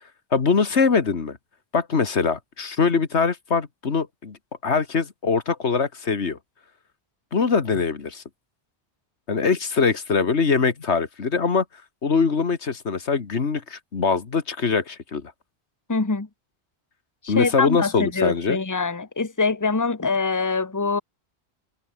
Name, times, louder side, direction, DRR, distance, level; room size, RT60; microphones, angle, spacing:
voice 1, 0.3-1.4 1.7-4.4 4.6-6.4 7.3-8.2 9.3-11.7 12.0-15.3 17.3-18.6, left 5 dB, 90° left, 2.1 m, -22 dB
voice 2, 15.9-16.3 17.2-21.0, left 4 dB, 15° left, 1.3 m, -24 dB
omnidirectional pair, 1.1 m